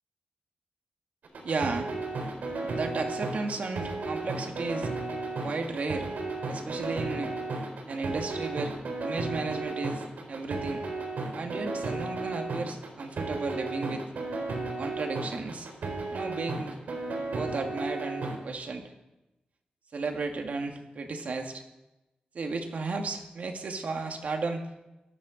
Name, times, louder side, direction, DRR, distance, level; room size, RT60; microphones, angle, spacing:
sound 1, 1.2-18.4, right 3 dB, 85° right, 4.1 m, -34 dB
voice 1, 1.4-4.9 5.4-6.1 6.5-7.3 7.9-10.8 11.3-14.0 14.8-15.7 16.1-16.8 17.3-18.9 19.9-21.6 22.3-24.6, right 3 dB, 60° right, 4 dB, 2.0 m, -34 dB
18.5 x 13.5 x 5.1 m, 1.0 s
wide cardioid pair, 145°, 3 cm